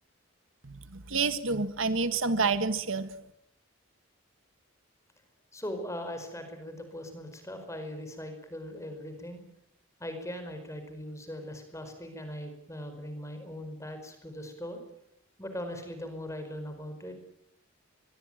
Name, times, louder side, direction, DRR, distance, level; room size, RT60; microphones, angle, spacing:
voice 1, 0.6-3.1, right 4 dB, 70° right, 11 dB, 1.8 m, -28 dB
voice 2, 5.5-9.4 10.0-14.8 15.4-17.2, left 1 dB, 15° left, 7 dB, 4.9 m, -40 dB
24.5 x 22.5 x 9.1 m, 0.78 s
head